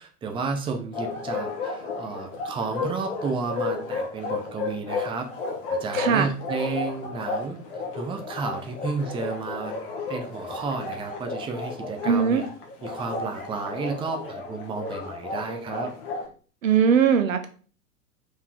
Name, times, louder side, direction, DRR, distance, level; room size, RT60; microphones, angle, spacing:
voice 1, 0.0-5.3 5.7-7.6 7.9-9.7 10.1-12.5 12.8-15.9, right 4 dB, 10° right, 5 dB, 0.8 m, -32 dB
Bark, 0.9-16.3, left 3 dB, 40° left, 2.2 m, -33 dB
voice 2, 5.9-6.3 12.0-12.4 16.6-17.5, right 7 dB, 60° right, 9 dB, 1.1 m, -20 dB
5.6 x 4.8 x 4.6 m, 0.40 s
figure-of-eight pair, 100°, 45 cm